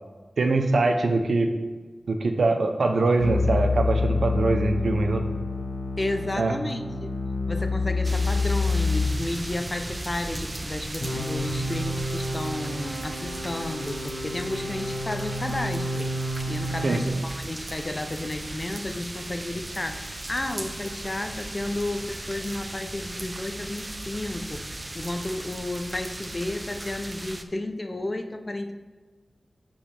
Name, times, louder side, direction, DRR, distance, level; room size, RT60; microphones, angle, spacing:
voice 1, 0.4-1.5 2.1-5.2 6.4-6.6 16.8-17.0, right 3 dB, 75° right, 5 dB, 0.7 m, -23 dB
sound 1, 3.2-9.1 11.0-17.1, left 2 dB, 55° left, 1.3 m, -28 dB
voice 2, 6.0-7.1 7.5-16.1 16.5-28.7, left 1 dB, 30° left, 7 dB, 0.5 m, -32 dB
sound 2, 8.0-27.4, right 1 dB, 25° right, 0.5 m, -37 dB
8.5 x 5.3 x 3.4 m, 1.4 s
wide cardioid pair, 95°, 0 cm